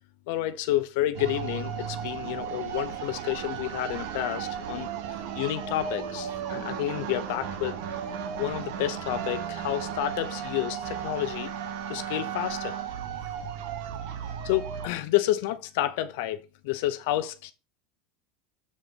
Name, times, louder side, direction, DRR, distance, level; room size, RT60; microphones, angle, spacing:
voice 1, 0.3-7.8 8.4-11.5 11.9-12.8 14.4-17.5, left 14 dB, 70° left, 0.8 m, -30 dB
sound 1, 1.1-14.9, right 8 dB, 70° right, 1.5 m, -35 dB
7.6 x 3.9 x 5.2 m
supercardioid pair, 130°, 0 cm